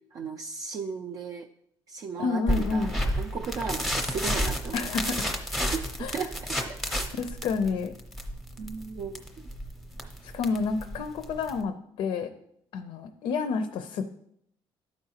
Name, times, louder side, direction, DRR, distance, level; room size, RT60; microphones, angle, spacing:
voice 1, 0.1-1.5 1.9-5.2 5.7-6.8 8.6-9.2, right 5 dB, 35° right, 3 dB, 0.4 m, -36 dB
voice 2, 2.2-3.0 4.7-5.3 6.0-6.3 7.2-7.9 10.2-12.3 12.7-14.0, left 5 dB, 60° left, 8 dB, 0.5 m, -29 dB
sound 1, 2.5-11.6, equal, ahead, 0.7 m, -31 dB
12.5 x 4.8 x 2.8 m, 0.73 s
cardioid pair, 175°, 10 cm